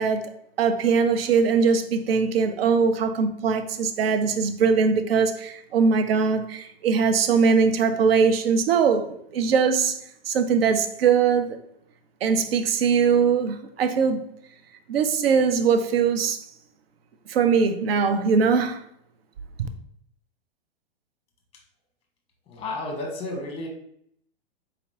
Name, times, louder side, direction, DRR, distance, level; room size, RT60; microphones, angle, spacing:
voice 1, 0.0-10.0 10.3-11.6 12.2-14.2 14.9-16.4 17.3-18.8 19.6-19.7, right 5 dB, 70° right, 0.6 m, -21 dB
voice 2, 22.5-23.7, left 2 dB, 20° left, 1.0 m, -32 dB
4.1 x 2.9 x 2.7 m
hypercardioid pair, 115°, 30 cm